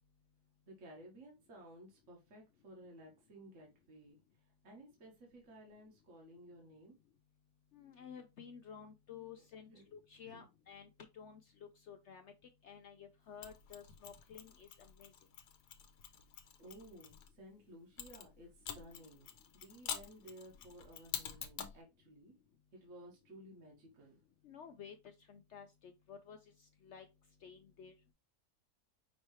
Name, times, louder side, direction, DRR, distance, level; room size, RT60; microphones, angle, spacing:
voice 1, 0.6-6.9 9.4-9.8 10.3-10.5 16.6-22.3 22.7-24.2, right 1 dB, 55° right, 1.6 m, -56 dB
voice 2, 7.7-12.3 12.6-15.1 24.4-26.4 26.8-27.1 27.4-27.9, left 7 dB, 70° left, 0.6 m, -53 dB
Mechanisms, 13.4-17.3 18.0-21.8, left 8 dB, 90° left, 1.3 m, -47 dB
5.5 x 3.0 x 3.1 m
omnidirectional pair, 1.7 m